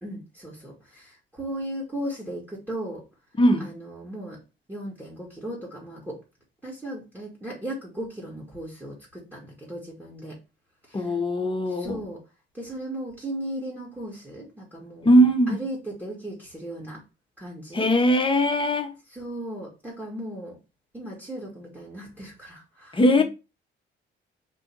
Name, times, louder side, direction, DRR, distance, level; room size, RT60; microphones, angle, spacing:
voice 1, 0.0-3.0 3.6-4.4 4.7-6.2 6.6-10.4 10.9-11.2 11.7-12.2 12.5-17.0 17.4-17.9 19.1-20.6 20.9-23.2, right 1 dB, 10° right, 1.7 m, -37 dB
voice 2, 3.4-3.7 10.9-12.0 15.0-15.6 17.7-18.9 22.9-23.2, equal, 25° left, 0.9 m, -20 dB
3.6 x 2.5 x 4.5 m
cardioid pair, 90°, 20 cm